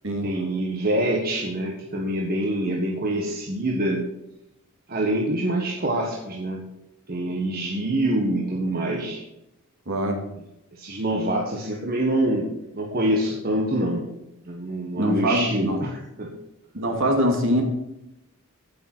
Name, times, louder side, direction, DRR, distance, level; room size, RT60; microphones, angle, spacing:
voice 1, 0.2-4.1 4.9-6.6 7.1-9.2 10.7-14.1 14.4-16.3, right 1 dB, 45° right, 0 dB, 1.4 m, -25 dB
voice 2, 9.9-10.2 15.0-15.8 16.7-17.6, equal, 60° right, 2 dB, 2.6 m, -23 dB
8.6 x 8.4 x 6.1 m, 0.88 s
head